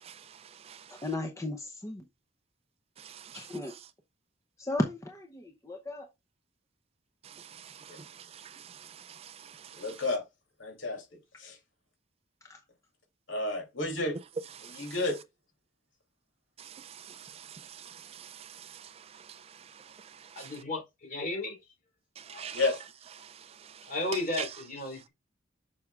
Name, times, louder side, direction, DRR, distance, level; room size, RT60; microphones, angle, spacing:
voice 1, 0.0-1.0 3.0-3.6 7.2-10.0 14.6-15.0 16.6-20.6 22.2-22.7 23.2-24.5, right 8 dB, 30° right, 0.3 m, -46 dB
voice 2, 0.9-2.0 3.3-3.7 4.6-6.1 12.5-12.6, left 1 dB, 15° left, 0.7 m, -35 dB
voice 3, 9.7-10.2 10.6-11.0 11.4-11.6 13.3-14.1 14.7-15.2 22.5-22.8, left 2 dB, 80° left, 2.9 m, -31 dB
voice 4, 20.3-21.6 22.3-22.5 23.9-25.1, left 2 dB, 45° left, 3.7 m, -34 dB
7.5 x 6.0 x 2.4 m
head